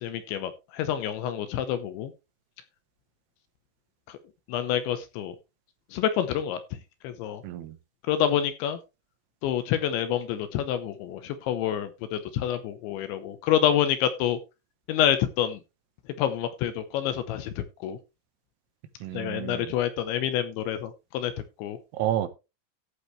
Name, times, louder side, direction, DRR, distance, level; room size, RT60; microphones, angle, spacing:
voice 1, 0.0-2.1 4.5-5.4 5.9-6.6 7.0-7.4 8.1-8.8 9.4-14.4 14.9-15.6 16.2-18.0 19.1-21.3 21.6-21.8, left 10 dB, 75° left, 11 dB, 2.8 m, -27 dB
voice 2, 7.4-7.8 19.0-19.7 21.9-22.3, right 11 dB, 85° right, 11 dB, 3.8 m, -30 dB
14.5 x 8.2 x 3.1 m, 0.26 s
omnidirectional pair, 5.9 m